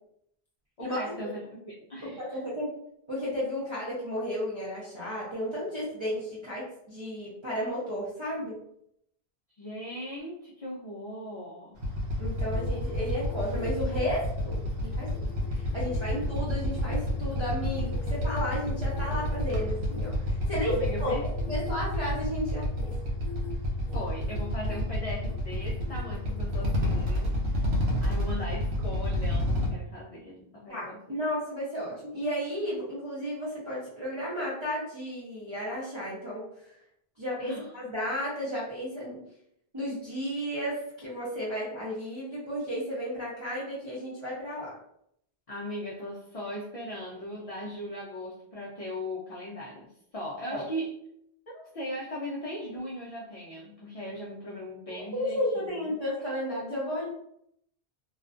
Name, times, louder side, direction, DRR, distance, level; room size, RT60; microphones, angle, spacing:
voice 1, 0.8-2.4 9.6-11.8 20.4-21.6 23.9-27.7 28.0-31.0 37.4-37.7 45.5-49.9 50.1-50.9 51.5-55.8, equal, 50° left, -4 dB, 0.4 m, -39 dB
voice 2, 2.0-2.8 3.1-8.5 12.2-15.1 15.5-21.2 21.5-22.9 30.7-36.4 37.2-39.2 39.7-44.8 50.5-50.6 55.0-57.1, equal, 35° right, -9 dB, 0.6 m, -33 dB
Motorcycle / Idling, 11.8-29.7, left 1 dB, 90° right, 0.9 m, -29 dB
sound 1, 12.3-20.1 20.6-22.2 22.7-23.0 23.2-23.5 23.8-24.8 25.3-27.0, left 3 dB, 85° left, 0.9 m, -47 dB
2.4 x 2.2 x 2.4 m, 0.74 s
omnidirectional pair, 1.0 m